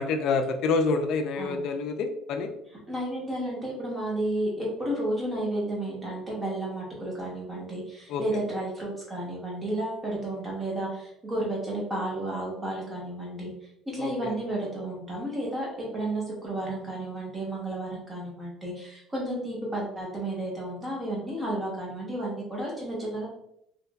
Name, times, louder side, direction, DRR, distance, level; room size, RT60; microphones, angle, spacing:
voice 1, 0.0-2.5 8.1-8.2 14.0-14.3, left 4 dB, 50° left, 5 dB, 0.3 m, -27 dB
voice 2, 2.9-13.5 13.9-23.3, right 1 dB, 10° right, -4 dB, 0.8 m, -32 dB
2.8 x 2.5 x 2.2 m, 0.75 s
cardioid pair, 170°, 0 cm